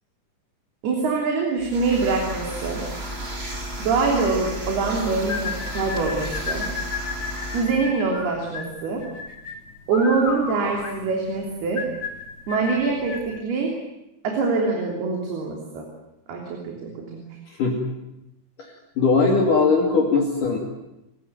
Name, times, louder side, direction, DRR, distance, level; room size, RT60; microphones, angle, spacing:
voice 1, 0.8-2.8 3.8-6.6 7.5-9.0 9.9-11.9 12.5-13.8 14.2-15.9 16.3-17.2, right 4 dB, 60° right, 0 dB, 5.1 m, -24 dB
sound 1, 1.6-7.7, equal, 15° right, 2.6 m, -33 dB
sound 2, 5.3-13.3, left 4 dB, 30° left, 3.3 m, -33 dB
voice 2, 19.0-20.6, left 4 dB, 50° left, 0 dB, 3.9 m, -19 dB
29.5 x 17.0 x 9.4 m, 0.90 s
omnidirectional pair, 5.2 m